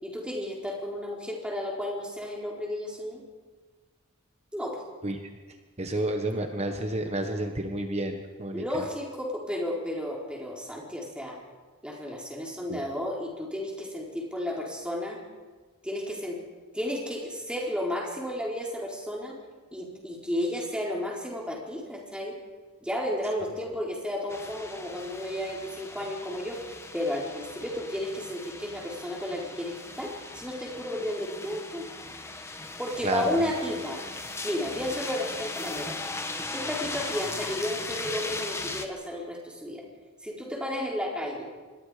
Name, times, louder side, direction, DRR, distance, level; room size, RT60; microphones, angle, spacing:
voice 1, 0.0-3.2 4.5-4.8 8.5-11.4 11.8-15.2 15.8-16.4 16.7-19.4 19.7-22.4 22.8-26.6 26.9-31.9 32.8-34.0 34.4-36.0 36.5-39.8 40.2-41.5, left 1 dB, 5° right, -2 dB, 4.2 m, -33 dB
voice 2, 5.8-8.6 12.7-12.8 33.0-33.3, right 1 dB, 30° right, 5 dB, 1.3 m, -30 dB
sound 1, 24.3-38.9, left 2 dB, 10° left, 1.3 m, -38 dB
26.5 x 22.0 x 5.1 m, 1.3 s
head